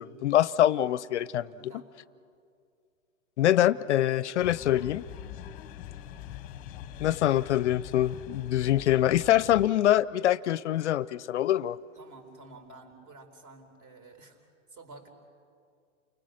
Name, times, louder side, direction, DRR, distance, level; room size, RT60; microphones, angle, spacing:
voice 1, 0.0-1.5 3.4-5.0 7.0-11.8, left 12 dB, 60° left, 20 dB, 0.5 m, -24 dB
voice 2, 1.6-1.9 11.9-15.1, right 3 dB, 40° right, 5 dB, 4.1 m, -51 dB
sound 1, 4.4-9.7, left 10 dB, 20° left, 0.9 m, -43 dB
29.5 x 20.5 x 6.4 m, 2.3 s
hypercardioid pair, 145°, 40 cm